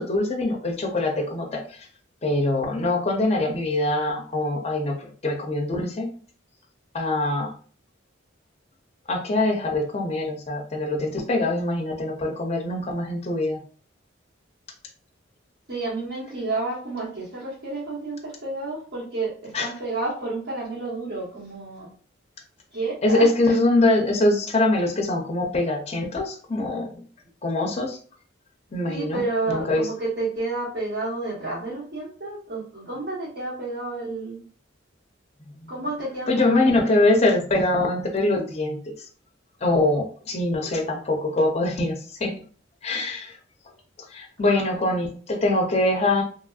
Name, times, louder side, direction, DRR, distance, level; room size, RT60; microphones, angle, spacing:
voice 1, 0.0-1.6 2.2-4.9 5.2-6.1 6.9-7.5 9.1-13.6 19.5-19.7 23.0-27.0 27.4-28.0 28.7-29.2 29.5-29.8 35.5-35.7 36.3-38.9 39.6-42.3 42.8-43.3 44.1-46.2, left 2 dB, 35° left, 1 dB, 0.6 m, -23 dB
voice 2, 15.7-21.9 22.7-23.6 28.9-34.4 35.7-36.7 44.5-44.8, right 3 dB, 55° right, -5 dB, 1.4 m, -30 dB
2.9 x 2.5 x 2.3 m, 0.43 s
head